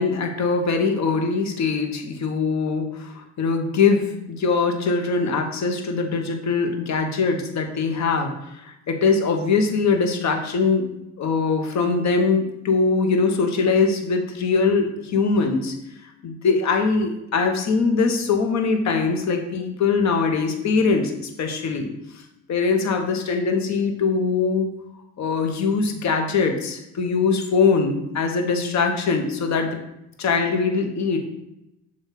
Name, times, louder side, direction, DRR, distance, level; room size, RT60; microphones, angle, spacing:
voice 1, 0.0-10.9 11.2-15.7 16.2-22.2 22.5-24.7 25.2-29.8 30.2-31.2, left 4 dB, 65° left, 4 dB, 1.1 m, -22 dB
7.1 x 2.7 x 5.8 m, 0.87 s
cardioid pair, 90°, 30 cm